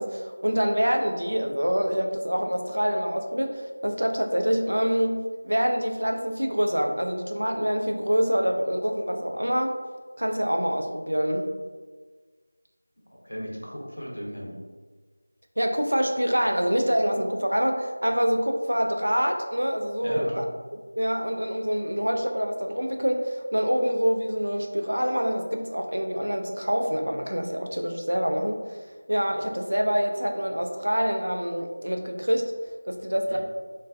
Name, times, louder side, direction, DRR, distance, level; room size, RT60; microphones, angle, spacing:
voice 1, 0.0-5.2 5.4-9.8 10.2-11.5 15.6-20.5 21.0-28.6 29.1-32.5 32.8-33.4, equal, 75° right, 4 dB, 0.3 m, -26 dB
voice 2, 13.2-14.5 20.0-20.4 33.3-33.4, equal, 75° left, -5 dB, 0.9 m, -35 dB
2.3 x 2.2 x 2.4 m, 1.4 s
figure-of-eight pair, 170°, 0 cm